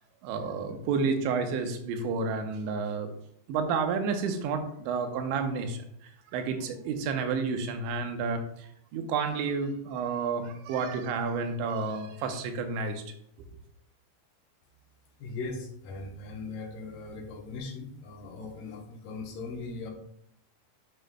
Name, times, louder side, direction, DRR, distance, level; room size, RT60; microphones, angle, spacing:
voice 1, 0.2-3.1 3.5-5.8 6.3-13.0 13.4-13.5, right 5 dB, 85° right, 5 dB, 3.2 m, -30 dB
voice 2, 15.2-19.9, left 3 dB, 70° left, 2 dB, 2.1 m, -39 dB
10.0 x 7.6 x 2.2 m, 0.72 s
omnidirectional pair, 5.2 m